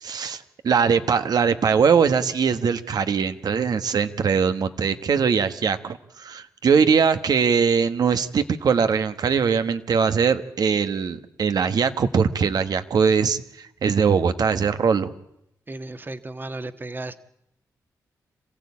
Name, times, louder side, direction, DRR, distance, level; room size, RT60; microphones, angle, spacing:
voice 1, 0.0-15.1, right 6 dB, 70° right, 10 dB, 1.4 m, -21 dB
voice 2, 15.7-17.2, right 2 dB, 30° right, 10 dB, 1.5 m, -34 dB
27.0 x 15.5 x 8.5 m, 0.80 s
cardioid pair, 65°, 7 cm